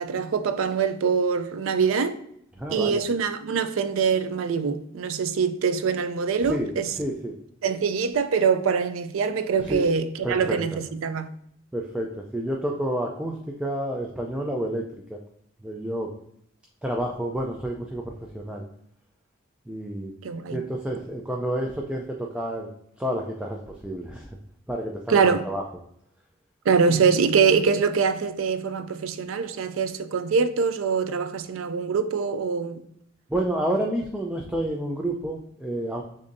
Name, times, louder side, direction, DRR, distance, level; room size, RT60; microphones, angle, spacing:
voice 1, 0.0-2.2 2.7-6.9 7.6-11.3 20.2-20.6 25.1-25.4 26.7-32.8, right 5 dB, 90° right, 0.4 m, -24 dB
voice 2, 2.6-3.0 6.4-7.4 9.6-9.9 10.2-10.8 11.7-13.3 13.6-14.8 15.1-15.2 15.6-16.1 16.8-18.6 19.7-20.1 20.5-22.7 23.0-24.3 24.7-25.6 26.9-27.1 33.3-36.0, right 1 dB, 5° right, 0.4 m, -29 dB
6.6 x 2.7 x 2.6 m
head